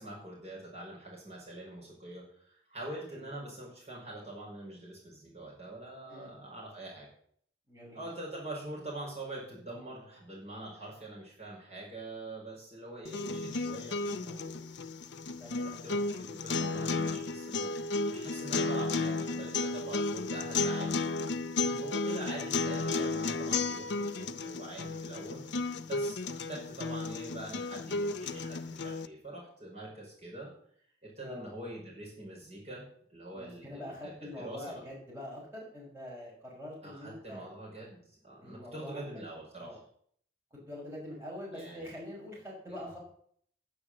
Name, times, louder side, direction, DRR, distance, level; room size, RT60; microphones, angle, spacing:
voice 1, 0.0-7.1 7.9-14.6 15.6-21.1 21.8-25.4 25.8-30.5 31.0-32.8 33.1-34.8 36.8-39.8 41.5-41.9 42.7-42.8, right 1 dB, 35° right, -4 dB, 5.4 m, -44 dB
voice 2, 7.7-8.0 15.4-15.9 21.6-21.8 31.2-31.6 33.3-37.5 38.4-39.1 39.6-39.8 40.5-43.0, left 1 dB, 15° right, -5 dB, 5.8 m, -44 dB
sound 1, 13.1-29.1, left 3 dB, 90° left, 0.7 m, -33 dB
10.0 x 9.9 x 7.6 m, 0.62 s
head